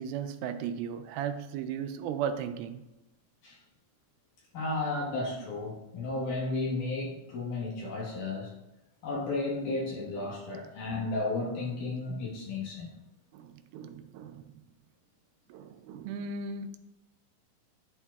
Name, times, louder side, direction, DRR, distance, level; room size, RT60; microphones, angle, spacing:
voice 1, 0.0-2.8 13.3-14.4 15.5-16.8, right 7 dB, 85° right, 2.3 m, -36 dB
voice 2, 4.5-8.5 9.0-12.9, left 2 dB, 65° left, 2.6 m, -33 dB
11.5 x 4.5 x 2.3 m
omnidirectional pair, 4.2 m